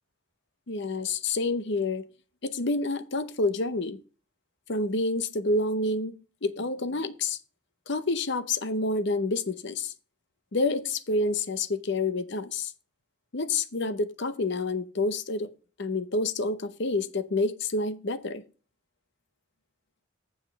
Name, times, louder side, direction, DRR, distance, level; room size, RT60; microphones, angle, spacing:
voice 1, 0.7-2.1 2.4-4.0 4.7-6.2 6.4-7.4 7.9-9.9 10.5-12.7 13.3-15.5 15.8-18.4, left 2 dB, 55° left, 0.8 m, -28 dB
7.3 x 5.5 x 7.3 m
head